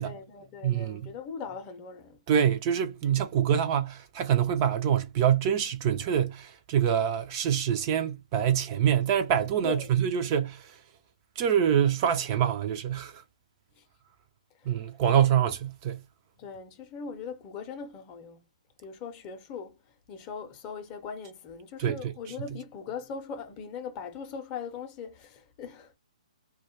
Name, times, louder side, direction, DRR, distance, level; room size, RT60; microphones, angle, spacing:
voice 1, 0.0-2.2 9.6-9.9 13.8-13.9 14.6-14.7 16.4-18.4 18.8-19.8 20.1-26.0, left 6 dB, 25° left, 0.6 m, -40 dB
voice 2, 0.6-1.1 2.3-10.7 11.4-13.2 14.7-16.0 21.8-22.1, right 9 dB, 35° right, 0.4 m, -25 dB
2.2 x 2.1 x 2.8 m
hypercardioid pair, 140°, 4 cm